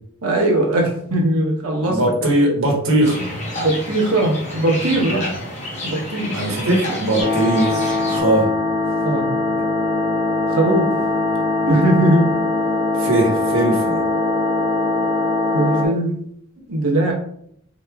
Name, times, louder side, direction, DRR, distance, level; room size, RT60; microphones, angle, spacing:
voice 1, 0.2-2.0 3.6-5.3 5.8-6.5 9.0-9.3 10.5-10.9 11.7-12.3 15.5-16.1 16.7-17.1, right 1 dB, 85° right, -1 dB, 1.1 m, -19 dB
voice 2, 1.8-3.3 5.0-5.3 6.3-8.5 13.0-14.0, right 1 dB, 65° right, -2 dB, 1.2 m, -20 dB
sound 1, 3.0-8.2, left 1 dB, 30° left, 0.9 m, -29 dB
sound 2, 7.2-15.9, left 2 dB, 50° left, 0.6 m, -21 dB
4.2 x 3.0 x 2.3 m, 0.69 s
head